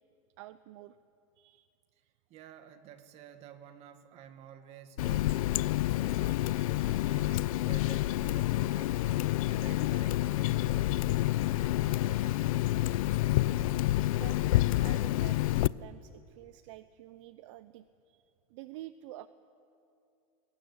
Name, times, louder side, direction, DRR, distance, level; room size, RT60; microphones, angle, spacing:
voice 1, 0.4-1.0 1.4-1.7 6.3-7.1 10.5-10.7 11.5-12.3 14.1-14.4 14.8-18.2 18.5-19.3, right 15 dB, 60° right, 13 dB, 0.7 m, -50 dB
voice 2, 2.3-5.6 6.0-6.5 6.8-9.0 9.4-11.0 11.4-12.7, right 9 dB, 35° right, 8 dB, 2.0 m, -52 dB
Water tap faucet, 5.0-15.7, left 16 dB, 80° left, 0.5 m, -28 dB
22.5 x 21.0 x 9.9 m, 2.6 s
supercardioid pair, 155°, 18 cm